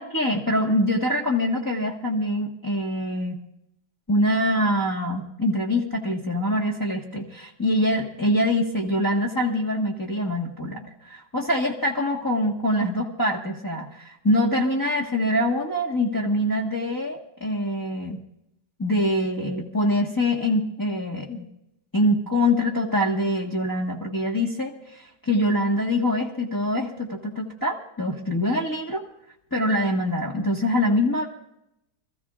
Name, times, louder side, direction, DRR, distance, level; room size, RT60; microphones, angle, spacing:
voice 1, 0.0-3.4 4.1-18.2 18.8-21.5 21.9-29.1 29.5-31.3, left 1 dB, 15° left, -4 dB, 1.4 m, -24 dB
26.5 x 15.0 x 2.5 m, 0.82 s
omnidirectional pair, 1.9 m